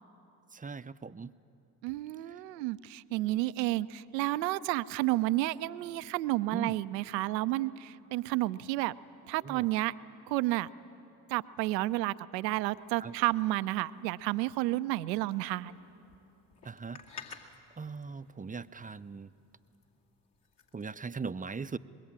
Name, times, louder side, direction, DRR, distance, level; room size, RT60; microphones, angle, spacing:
voice 1, 0.5-1.3 6.5-6.7 9.4-9.7 13.0-13.1 16.6-17.0 17.4-17.5 17.8-19.3 20.7-21.8, right 5 dB, 15° right, 13 dB, 0.6 m, -39 dB
voice 2, 1.8-8.9 9.3-9.9 10.3-10.7 11.3-15.8, right 17 dB, 85° right, 15 dB, 0.6 m, -31 dB
sound 1, 12.5-20.9, left 5 dB, 55° left, 2.7 m, -55 dB
25.0 x 21.5 x 8.8 m, 2.9 s
hypercardioid pair, 45°, 49 cm